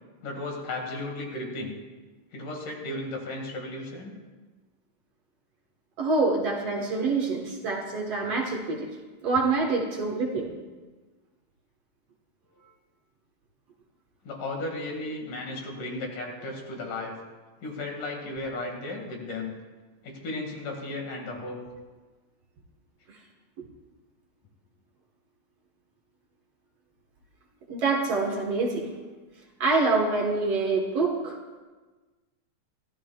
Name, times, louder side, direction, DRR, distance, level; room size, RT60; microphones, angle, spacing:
voice 1, 0.2-1.8 2.3-4.1 14.2-17.1 17.6-19.5 20.0-21.6, left 2 dB, 75° left, 1 dB, 3.6 m, -35 dB
voice 2, 6.0-8.9 9.2-10.5 27.7-28.9 29.6-31.6, right 3 dB, 55° right, 0 dB, 2.2 m, -26 dB
25.0 x 13.5 x 2.4 m, 1.3 s
omnidirectional pair, 3.8 m